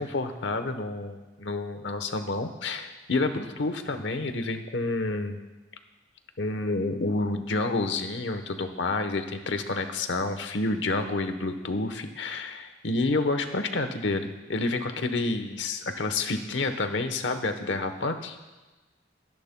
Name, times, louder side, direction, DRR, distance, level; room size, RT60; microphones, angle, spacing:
voice 1, 0.0-5.4 6.4-18.4, left 2 dB, 75° left, 8 dB, 1.0 m, -29 dB
23.5 x 10.5 x 2.2 m, 1.2 s
head